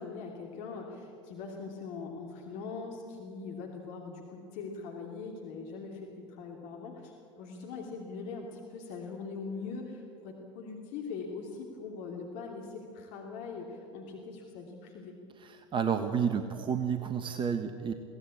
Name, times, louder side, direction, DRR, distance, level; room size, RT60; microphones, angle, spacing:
voice 1, 0.0-15.2, left 4 dB, 55° left, 1 dB, 2.9 m, -41 dB
voice 2, 15.4-17.9, right 7 dB, 35° right, 9 dB, 1.3 m, -30 dB
22.5 x 17.0 x 8.6 m, 2.6 s
figure-of-eight pair, 75°, 15 cm